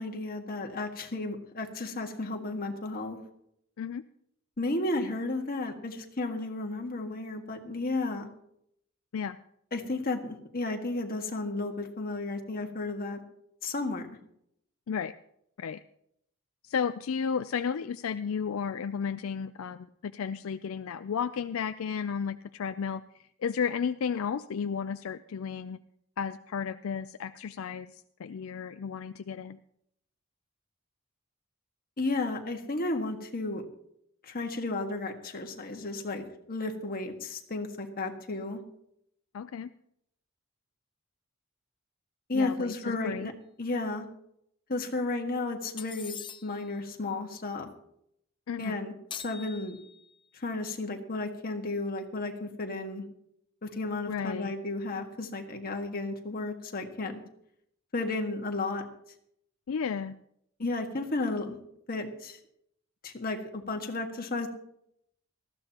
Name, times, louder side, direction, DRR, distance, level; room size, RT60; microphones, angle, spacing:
voice 1, 0.0-3.2 4.6-8.3 9.7-13.2 13.6-14.1 32.0-33.7 34.2-38.6 42.3-43.3 43.6-44.1 44.7-47.7 48.6-49.8 50.3-53.0 53.6-57.2 57.9-58.8 60.6-61.6 61.9-62.4 63.0-64.5, left 2 dB, 45° left, 3 dB, 1.7 m, -33 dB
voice 2, 16.6-23.0 23.4-25.8 26.2-29.6 39.3-39.7 42.3-43.3 48.5-48.8 54.1-54.5 59.7-60.2, left 6 dB, 75° left, 11 dB, 0.4 m, -33 dB
sound 1, 45.8-46.7 49.1-50.2, left 8 dB, 25° left, 0.5 m, -43 dB
19.0 x 14.0 x 2.9 m, 0.73 s
head